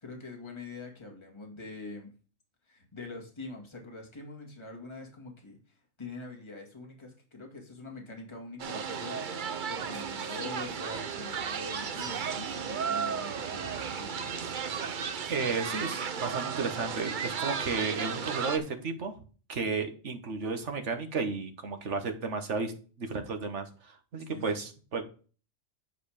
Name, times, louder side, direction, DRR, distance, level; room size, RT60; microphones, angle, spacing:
voice 1, 0.0-2.1 2.7-9.3 9.7-14.5 24.3-24.6, left 3 dB, 20° left, 1 dB, 2.1 m, -44 dB
sound 1, 8.6-18.6, right 6 dB, 50° right, 0.7 m, -34 dB
voice 2, 15.3-19.1 19.5-22.7 23.0-25.0, right 4 dB, 65° right, 6 dB, 1.7 m, -33 dB
9.5 x 5.0 x 4.9 m, 0.37 s
omnidirectional pair, 1.3 m